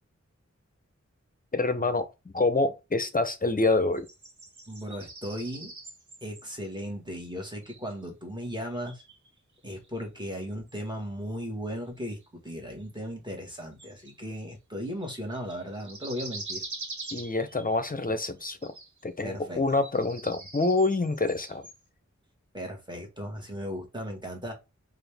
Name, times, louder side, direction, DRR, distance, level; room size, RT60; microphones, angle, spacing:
voice 1, 1.5-4.1 17.1-18.7 19.0-21.7, left 3 dB, 30° left, 0.6 m, -27 dB
sound 1, 3.9-6.5 7.2-7.3 7.6-8.1 8.7-10.0 10.7-10.8 12.2-12.3 12.8-12.9 13.8-14.4 14.9-17.8 18.3-19.0 19.4-21.8, right 3 dB, 75° right, 0.9 m, -44 dB
voice 2, 4.7-5.7 6.2-9.0 9.6-16.6 19.2-19.6 22.5-24.5, equal, 15° right, 1.6 m, -36 dB
4.0 x 2.5 x 3.4 m
wide cardioid pair, 45°, 30 cm